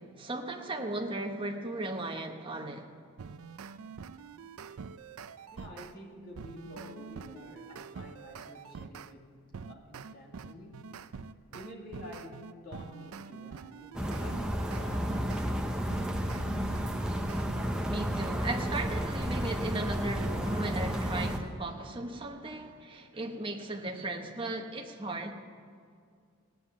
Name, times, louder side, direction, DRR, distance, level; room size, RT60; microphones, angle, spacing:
voice 1, 0.0-2.9 17.9-25.4, right 2 dB, 25° right, 2 dB, 1.0 m, -36 dB
sound 1, 3.2-5.9 6.4-9.1 9.5-15.5 15.9-17.8, right 5 dB, 75° right, 0.5 m, -45 dB
voice 2, 5.5-15.8, left 1 dB, 40° left, -2 dB, 2.3 m, -49 dB
sound 2, 13.9-21.4, equal, 5° right, 0.7 m, -32 dB
17.0 x 9.4 x 7.2 m, 2.2 s
head